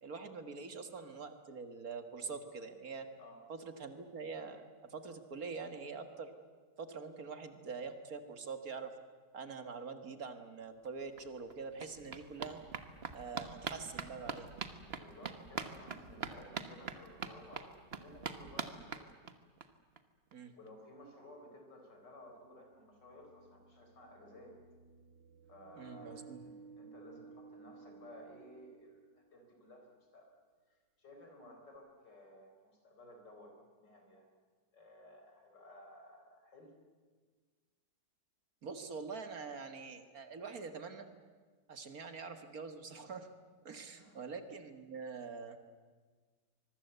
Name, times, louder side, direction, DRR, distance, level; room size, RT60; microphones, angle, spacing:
voice 1, 0.0-3.1 3.5-6.3 6.8-9.0 9.3-12.6 13.1-14.5 20.3-20.5 25.8-26.4 38.6-41.1 41.7-43.3 43.6-45.6, right 5 dB, 55° right, 8 dB, 2.1 m, -45 dB
sound 1, 10.9-11.0 11.2-19.7 20.0-20.1 20.3-20.4 20.7-20.8, right 5 dB, 40° right, 1.3 m, -44 dB
voice 2, 14.9-19.1 20.5-24.6 25.5-30.3 30.7-34.3 34.7-36.7 44.0-44.2, left 1 dB, 75° left, 3 dB, 5.2 m, -56 dB
sound 2, 21.0-21.1 22.6-29.5, right 5 dB, 75° right, 2.9 m, -57 dB
25.0 x 22.5 x 8.1 m, 1.5 s
omnidirectional pair, 1.9 m